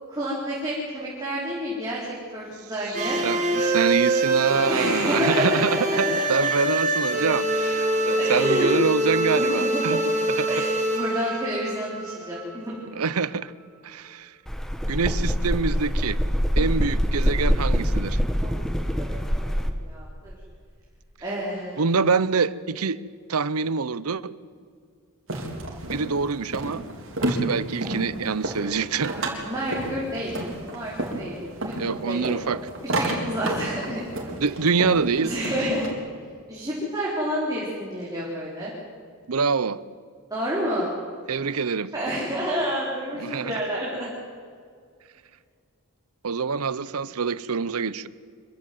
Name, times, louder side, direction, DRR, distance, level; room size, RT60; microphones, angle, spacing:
voice 1, 0.1-2.0 2.3-3.2 4.7-6.2 8.1-8.7 9.3-10.0 10.5-12.7 18.4-18.5 18.9-20.3 21.2-21.8 29.5-30.3 30.7-32.2 32.9-34.0 35.2-35.9 36.5-38.7 40.3-40.9 41.9-44.1, equal, 15° right, -6 dB, 4.2 m, -29 dB
sound 1, 2.9-12.9, right 2 dB, 35° right, 4.5 m, -25 dB
voice 2, 3.2-10.0 10.4-10.6 12.9-13.5 13.8-14.3 14.9-16.2 16.6-18.2 21.8-23.0 23.3-24.3 25.8-26.8 27.2-29.1 31.8-32.6 34.4-35.3 39.3-39.8 41.3-41.9 43.2-43.5 46.2-48.1, right 5 dB, 85° right, 18 dB, 0.7 m, -25 dB
sound 2, 14.5-19.7, equal, ahead, 1.4 m, -24 dB
sound 3, 25.3-35.9, right 1 dB, 60° right, 4.0 m, -31 dB
25.5 x 15.5 x 9.4 m, 2.2 s
head